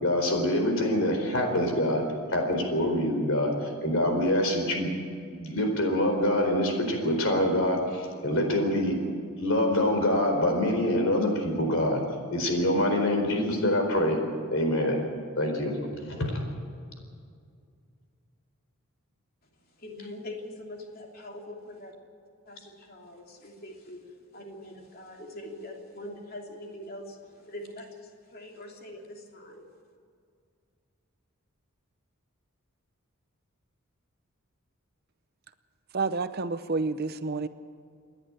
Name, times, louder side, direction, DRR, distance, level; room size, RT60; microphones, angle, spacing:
voice 1, 0.0-2.0 2.3-4.9 5.3-8.9 9.4-12.0 12.3-14.2 14.5-15.0 15.4-15.7 16.0-16.3, left 1 dB, 65° left, 3 dB, 4.4 m, -25 dB
voice 2, 19.8-21.9 22.5-24.0 24.3-29.6, left 1 dB, 45° left, 1 dB, 3.0 m, -43 dB
voice 3, 35.9-37.5, right 3 dB, 45° right, 11 dB, 0.7 m, -29 dB
28.5 x 11.0 x 8.9 m, 2.2 s
head